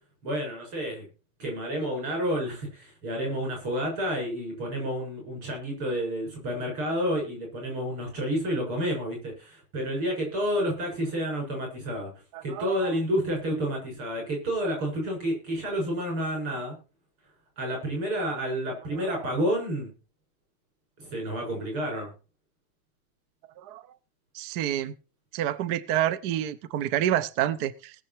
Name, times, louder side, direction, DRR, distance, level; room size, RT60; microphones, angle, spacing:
voice 1, 0.2-1.0 1.4-12.1 12.4-16.8 17.6-19.9 21.0-22.1, equal, 85° right, 7.7 m, -30 dB
voice 2, 12.3-12.9 18.9-19.3 23.6-23.8 24.3-24.9 25.3-27.9, right 11 dB, 60° right, 1.1 m, -28 dB
19.5 x 6.9 x 4.4 m
omnidirectional pair, 2.3 m